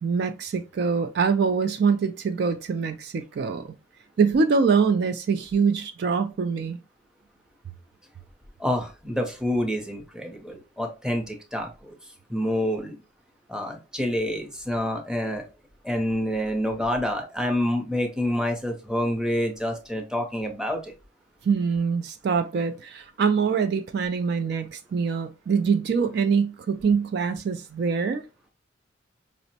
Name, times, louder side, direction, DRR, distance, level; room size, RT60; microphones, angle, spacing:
voice 1, 0.0-3.7 4.2-6.8 21.4-28.3, right 5 dB, 55° right, 0.3 m, -24 dB
voice 2, 8.6-11.9 12.3-13.0 13.5-15.4 15.8-20.9, left 1 dB, 5° right, 0.6 m, -27 dB
5.0 x 2.0 x 2.7 m
head